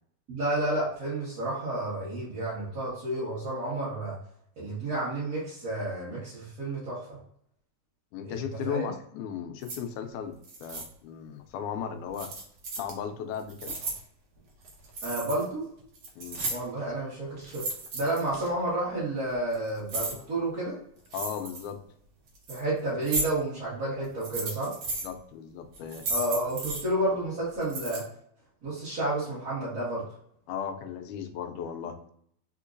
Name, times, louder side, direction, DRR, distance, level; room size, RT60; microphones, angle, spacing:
voice 1, 0.3-4.2 4.6-7.2 8.3-8.8 15.0-15.6 16.5-17.6 17.9-20.8 22.5-24.7 26.1-28.0 28.6-30.0, right 1 dB, 40° right, -10 dB, 1.4 m, -31 dB
voice 2, 8.1-12.4 12.8-13.8 16.2-16.4 21.1-21.9 25.0-26.1 30.5-32.0, left 8 dB, 85° left, 7 dB, 2.0 m, -36 dB
sound 1, 9.6-9.8 10.4-10.8 12.1-12.9 13.4-14.0 14.6-15.4 15.8-16.8 17.4-18.5 19.3-20.1 21.0-21.7 22.3-22.6 23.0-23.2 24.0-25.1 25.7-26.8 27.6-28.0, right 2 dB, 75° right, 1.0 m, -34 dB
4.5 x 3.7 x 2.4 m, 0.68 s
omnidirectional pair, 3.4 m